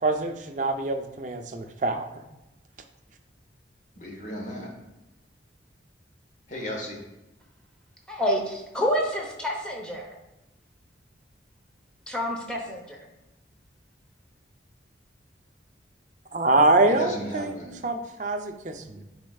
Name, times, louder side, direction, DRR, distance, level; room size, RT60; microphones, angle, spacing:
voice 1, 0.0-2.0 16.3-17.6 17.8-19.0, right 2 dB, 40° right, 5 dB, 0.5 m, -24 dB
voice 2, 4.0-4.7 6.5-7.0 16.9-17.7, equal, 40° left, -1 dB, 1.2 m, -34 dB
voice 3, 8.1-10.2 12.1-13.1, equal, 5° left, -1 dB, 0.9 m, -28 dB
9.6 x 4.3 x 2.3 m, 0.97 s
head